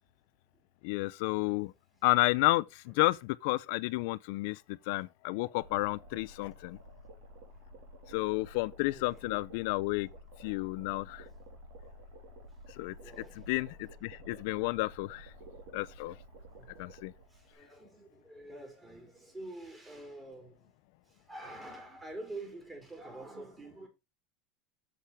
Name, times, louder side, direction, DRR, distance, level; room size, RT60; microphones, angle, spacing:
voice 1, 0.8-1.7 2.0-6.8 8.1-10.1 10.4-11.3 12.7-12.9 13.5-15.3 15.7-16.1 16.8-17.1, left 21 dB, 70° left, 0.5 m, -31 dB
sound 1, 5.6-17.5, equal, 75° right, 2.7 m, -52 dB
voice 2, 8.8-9.7 13.0-13.5 16.3-16.8 17.3-20.7 21.0-23.9, right 2 dB, 15° right, 3.7 m, -47 dB
7.1 x 6.7 x 4.5 m
supercardioid pair, 140°, 0 cm